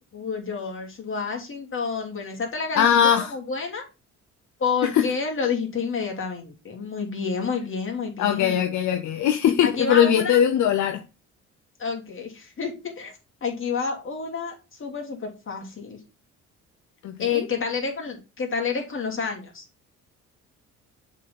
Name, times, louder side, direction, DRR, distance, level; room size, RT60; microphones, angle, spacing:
voice 1, 0.1-3.8 4.6-8.6 9.6-10.4 11.8-16.0 17.2-19.6, left 5 dB, 45° left, 2.9 m, -29 dB
voice 2, 2.7-3.3 4.9-5.1 8.2-11.0 17.0-17.4, left 9 dB, 70° left, 0.8 m, -20 dB
7.2 x 4.0 x 5.7 m
cardioid pair, 90°, 30 cm